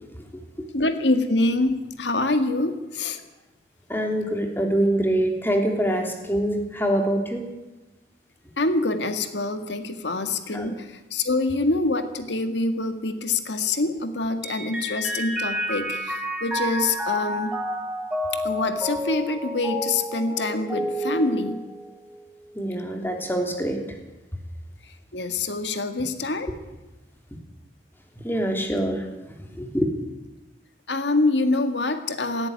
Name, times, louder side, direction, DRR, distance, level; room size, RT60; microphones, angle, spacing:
voice 1, 0.7-3.2 8.6-17.6 18.3-21.6 25.1-26.5 30.9-32.5, left 2 dB, 85° left, 8 dB, 1.8 m, -25 dB
voice 2, 3.9-7.4 10.5-10.7 22.5-23.8 28.2-29.0 29.6-29.9, right 1 dB, 10° left, 3 dB, 3.3 m, -24 dB
Mallet percussion, 14.4-22.2, equal, 5° right, 2.4 m, -30 dB
18.5 x 16.0 x 9.8 m, 1.1 s
head